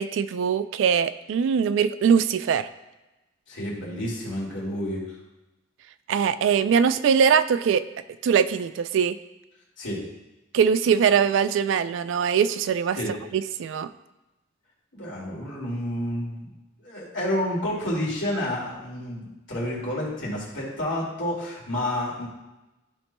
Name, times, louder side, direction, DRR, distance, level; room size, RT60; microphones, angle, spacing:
voice 1, 0.0-2.7 6.1-7.8 8.2-9.2 10.5-13.0 13.3-13.9, right 7 dB, 75° right, 13 dB, 0.3 m, -22 dB
voice 2, 3.5-5.0 9.8-10.0 13.0-13.1 14.9-16.5 16.8-22.3, left 1 dB, 70° left, -5 dB, 2.3 m, -29 dB
11.5 x 4.2 x 2.2 m, 1.0 s
head